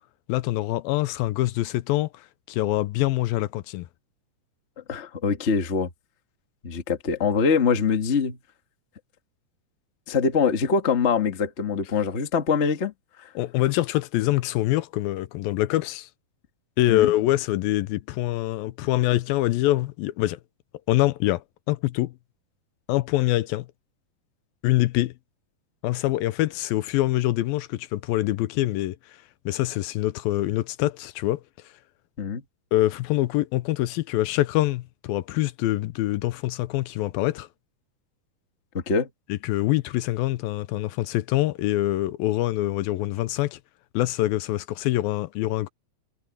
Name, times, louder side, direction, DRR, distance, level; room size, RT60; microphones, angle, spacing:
voice 1, 0.3-3.9 13.4-16.1 16.8-20.4 20.9-22.1 22.9-23.7 24.6-25.1 25.8-29.0 29.5-31.4 32.7-37.5 39.3-43.6 43.9-45.7, left 16 dB, 90° left, 2.5 m, -25 dB
voice 2, 4.9-5.9 6.6-8.4 10.1-12.9 13.2-13.3 16.9-17.1 32.2-32.4 38.7-39.1, left 5 dB, 70° left, 0.6 m, -23 dB
omnidirectional pair, 4.2 m